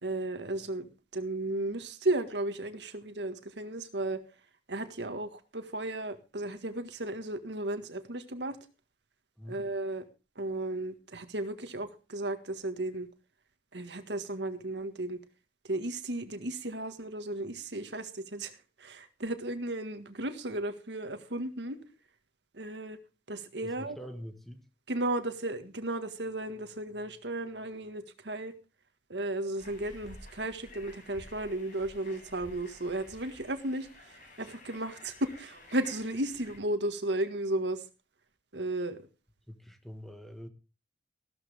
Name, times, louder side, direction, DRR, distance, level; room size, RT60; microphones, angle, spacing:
voice 1, 0.0-4.2 4.7-8.6 9.5-10.0 10.4-13.1 13.7-15.2 15.7-18.5 18.8-21.8 22.5-23.0 23.3-24.0 24.9-28.5 29.1-33.9 34.4-37.8 38.5-39.0, right 1 dB, 80° right, 1.7 m, -34 dB
voice 2, 23.6-24.6 39.5-40.5, equal, ahead, 1.5 m, -45 dB
sound 1, 29.6-36.6, left 1 dB, 45° left, 7.1 m, -52 dB
15.0 x 13.0 x 3.5 m
head